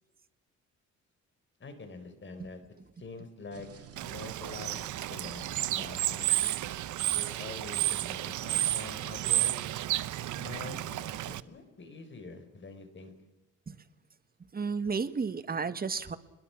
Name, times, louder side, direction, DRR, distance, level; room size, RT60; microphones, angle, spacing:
voice 1, 1.6-2.6 3.0-4.8 5.1-6.6 7.1-9.6 10.4-13.1, left 3 dB, 40° left, 8 dB, 4.8 m, -45 dB
sound 1, 3.5-9.0, right 7 dB, 50° right, 2.0 m, -54 dB
Bird / Water, 4.0-11.4, right 14 dB, 75° right, 0.9 m, -32 dB
voice 2, 14.5-16.2, right 5 dB, 30° right, 11 dB, 1.6 m, -33 dB
26.0 x 21.5 x 6.0 m, 1.1 s
cardioid pair, 90°, 30 cm